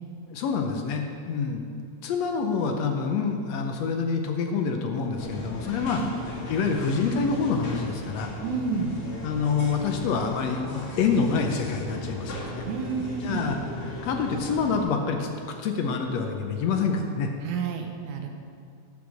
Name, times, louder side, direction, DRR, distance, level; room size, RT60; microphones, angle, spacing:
voice 1, 0.3-1.6 2.0-8.3 9.2-12.7 13.2-17.3, left 5 dB, 70° left, 4 dB, 1.8 m, -27 dB
sound 1, 5.2-14.8, left 1 dB, 50° left, 2.7 m, -37 dB
voice 2, 8.4-8.9 12.7-13.4 17.4-18.3, right 5 dB, 80° right, 3 dB, 2.4 m, -30 dB
10.5 x 7.7 x 6.3 m, 2.3 s
omnidirectional pair, 3.4 m